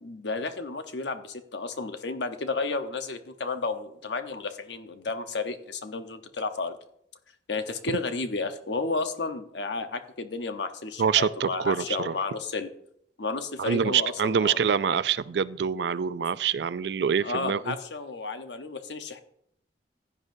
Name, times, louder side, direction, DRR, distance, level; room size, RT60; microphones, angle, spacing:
voice 1, 0.0-6.8 7.5-12.7 13.2-14.6 17.2-19.2, left 3 dB, 85° left, 1.0 m, -32 dB
voice 2, 11.0-12.1 13.6-17.7, right 7 dB, 75° right, 0.4 m, -26 dB
15.5 x 9.7 x 2.7 m
head